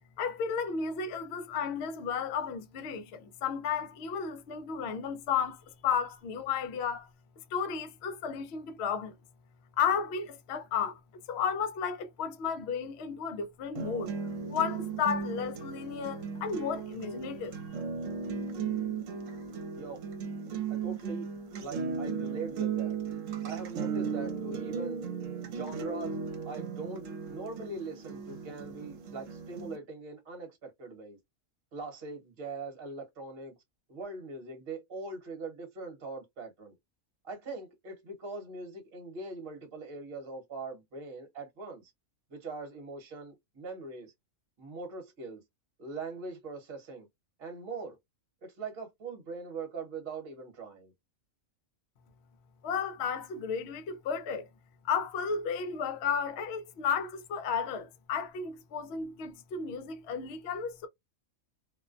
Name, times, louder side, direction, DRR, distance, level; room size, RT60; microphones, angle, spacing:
voice 1, 0.2-7.1 7.5-9.1 9.8-11.0 11.3-14.1 14.5-17.6 52.6-54.5 54.8-60.9, left 6 dB, 65° left, 0.7 m, -33 dB
sound 1, 13.8-29.8, right 6 dB, 70° right, 1.0 m, -36 dB
voice 2, 20.7-21.3 21.6-23.0 23.4-25.0 25.4-31.2 31.7-33.6 33.9-36.7 37.2-41.8 42.3-44.1 44.6-45.4 45.8-47.1 47.4-48.0 48.4-50.9, right 3 dB, 50° right, 1.1 m, -42 dB
2.4 x 2.1 x 2.4 m
omnidirectional pair, 1.4 m